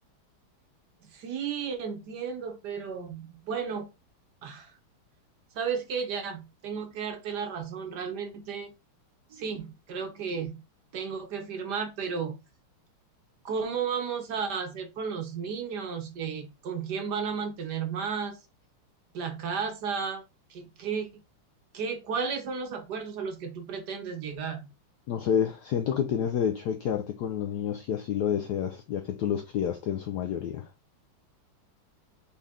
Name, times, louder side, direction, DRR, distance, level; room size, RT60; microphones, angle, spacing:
voice 1, 1.1-3.9 4.4-4.7 5.5-8.7 9.3-10.6 10.9-12.4 13.4-18.4 19.1-20.2 20.5-21.2 21.7-24.7, right 6 dB, 60° right, 1.2 m, -33 dB
voice 2, 25.1-30.7, left 9 dB, 90° left, 0.9 m, -29 dB
4.2 x 3.6 x 3.5 m
omnidirectional pair, 2.3 m